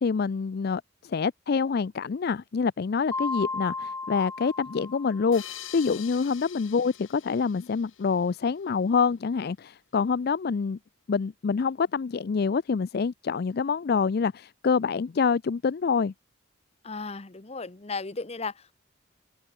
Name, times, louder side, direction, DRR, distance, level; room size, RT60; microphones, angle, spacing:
voice 1, 0.0-10.8 11.1-16.1, left 5 dB, 50° left, 0.4 m, -26 dB
Mallet percussion, 3.1-5.7, left 3 dB, 15° left, 1.2 m, -35 dB
sound 1, 5.3-8.6, left 11 dB, 80° left, 5.2 m, -45 dB
voice 2, 16.8-18.7, left 4 dB, 30° left, 1.0 m, -35 dB
head